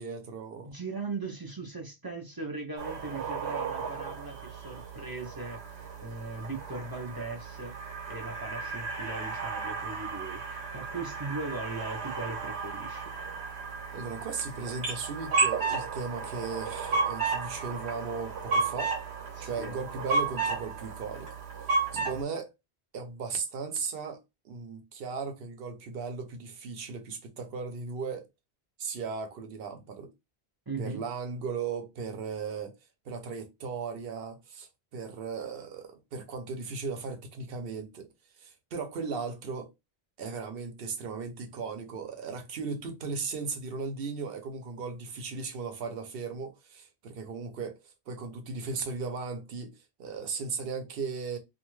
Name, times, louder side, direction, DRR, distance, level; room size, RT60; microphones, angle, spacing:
voice 1, 0.0-0.7 13.9-18.9 19.4-21.4 21.9-22.5 22.9-28.3 28.8-30.1 30.8-32.8 33.1-38.1 38.4-39.7 40.2-49.7 50.0-51.4, right 5 dB, 65° right, 0.8 m, -37 dB
voice 2, 0.6-7.8 8.1-13.0 19.3-19.8 21.9-22.2 30.7-31.0, right 3 dB, 30° right, 0.4 m, -39 dB
sound 1, 2.8-22.2, right 4 dB, 85° right, 1.1 m, -33 dB
2.5 x 2.3 x 3.1 m
omnidirectional pair, 1.1 m